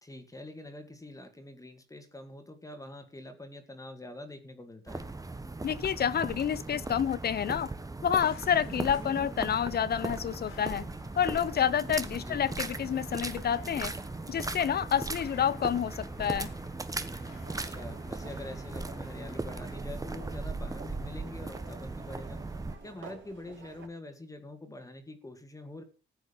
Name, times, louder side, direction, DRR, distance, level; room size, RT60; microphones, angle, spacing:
voice 1, 0.0-5.1 12.2-12.4 17.5-22.4 22.8-25.8, left 1 dB, 15° left, 2.1 m, -45 dB
sound 1, 4.9-22.7, right 3 dB, 15° right, 1.2 m, -38 dB
voice 2, 5.6-7.7 8.0-10.9 11.2-13.9 14.3-16.5, left 8 dB, 50° left, 0.6 m, -29 dB
sound 2, 8.1-19.8, left 5 dB, 90° left, 4.8 m, -55 dB
sound 3, 17.2-23.9, right 5 dB, 65° right, 3.8 m, -51 dB
14.5 x 8.0 x 5.4 m
cardioid pair, 95°, 20 cm